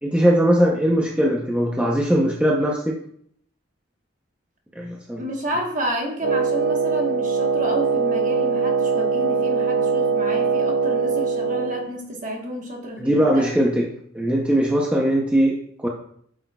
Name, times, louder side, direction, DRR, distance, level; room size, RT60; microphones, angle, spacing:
voice 1, 0.0-3.0 4.8-5.3 13.0-13.9 14.1-15.9, equal, 5° right, -2 dB, 0.6 m, -20 dB
voice 2, 5.2-13.6, equal, 40° right, 1 dB, 1.2 m, -30 dB
Wind instrument woodwind instrument, 6.2-11.9, right 5 dB, 60° right, 0.6 m, -22 dB
8.1 x 6.4 x 2.3 m, 0.64 s
head